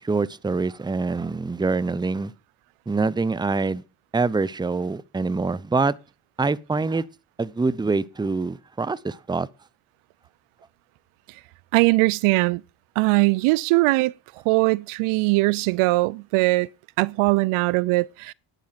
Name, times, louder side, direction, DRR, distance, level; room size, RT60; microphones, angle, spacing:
voice 1, 0.0-2.3 2.9-3.8 4.1-5.9 6.4-7.0 7.4-9.5, right 3 dB, 10° right, 0.6 m, -25 dB
voice 2, 11.7-12.6 13.0-14.1 14.5-16.7 17.0-18.3, right 22 dB, 80° right, 0.6 m, -20 dB
10.5 x 9.2 x 5.9 m
supercardioid pair, 75°, 49 cm